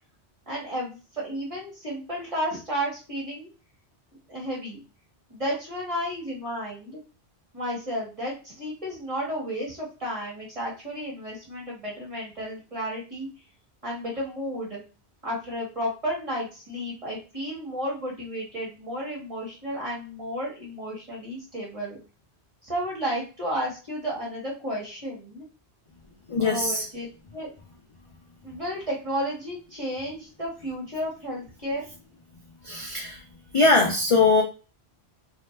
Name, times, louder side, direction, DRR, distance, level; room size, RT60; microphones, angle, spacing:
voice 1, 0.5-3.5 4.3-4.8 5.3-7.0 7.5-13.3 13.8-14.8 15.2-22.0 22.6-25.4 26.4-27.1 27.3-27.5 28.4-31.9, equal, 30° right, -5 dB, 1.5 m, -32 dB
voice 2, 26.3-26.9 32.6-33.2 33.5-34.4, left 3 dB, 55° left, 0 dB, 0.3 m, -21 dB
2.7 x 2.1 x 3.2 m, 0.32 s
omnidirectional pair, 1.1 m